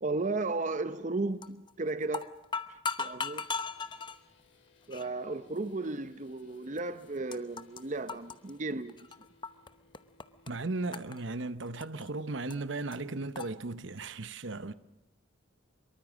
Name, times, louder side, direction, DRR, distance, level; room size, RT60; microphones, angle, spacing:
voice 1, 0.0-2.3 2.7-3.5 4.9-8.9, right 3 dB, 35° right, 0.7 m, -34 dB
sound 1, 1.4-1.7 2.0-4.2 4.9-5.1 5.8-5.9 6.8-6.9 7.1-7.8 8.1-9.7 9.9-10.5 10.9-12.1 12.5-12.6 12.9-13.0 13.3-13.5, left 4 dB, 25° left, 0.8 m, -37 dB
sound 2, 3.2-13.2, left 3 dB, 65° left, 3.7 m, -65 dB
voice 2, 10.5-14.7, right 3 dB, 65° right, 0.9 m, -36 dB
24.5 x 23.0 x 6.3 m
head